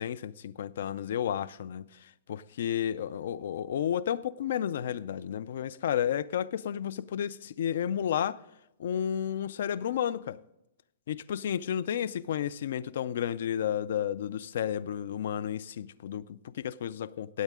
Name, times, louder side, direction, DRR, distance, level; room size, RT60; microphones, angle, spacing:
voice 1, 0.0-8.4 8.8-10.4 11.1-17.4, left 9 dB, 60° left, 0.4 m, -32 dB
16.0 x 8.1 x 3.6 m
hypercardioid pair, 170°, 0 cm